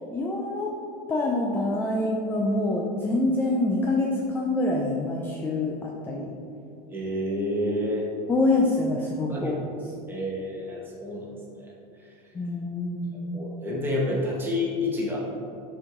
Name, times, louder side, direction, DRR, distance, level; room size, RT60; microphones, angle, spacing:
voice 1, 0.1-0.7 1.1-6.3 8.3-9.6 12.3-13.4, left 2 dB, 10° left, -1 dB, 0.4 m, -26 dB
voice 2, 6.9-8.0 9.3-9.6 10.1-11.7 13.3-15.2, left 1 dB, 10° right, -4 dB, 1.2 m, -29 dB
6.2 x 4.7 x 3.7 m, 2.6 s
supercardioid pair, 155°, 21 cm